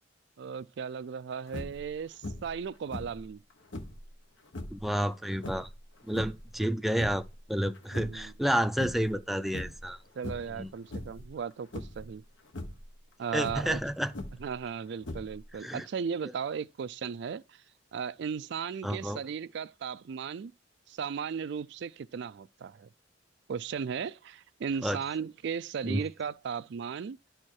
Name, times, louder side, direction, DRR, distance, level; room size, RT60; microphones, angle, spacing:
voice 1, 0.4-3.4 7.9-8.3 10.2-12.2 13.2-13.8 14.4-17.6 17.9-20.5 20.9-22.9 23.5-27.2, right 6 dB, 65° right, 0.4 m, -36 dB
sound 1, 1.5-1.9 2.2-2.6 2.9-4.0 4.5-4.8 5.4-6.5 6.8-7.4 7.7-8.5 8.8-9.2 9.5-9.9 10.2-10.6 10.9-11.3 11.7-12.1 12.5-12.8 13.4-14.5 15.0-15.6, left 1 dB, 80° left, 1.1 m, -40 dB
voice 2, 4.7-5.7 6.1-7.2 7.5-10.0 10.6-10.7 13.3-14.1 15.6-15.9 18.8-19.2 24.8-25.0 25.8-26.0, equal, ahead, 0.4 m, -30 dB
10.5 x 4.4 x 4.7 m
head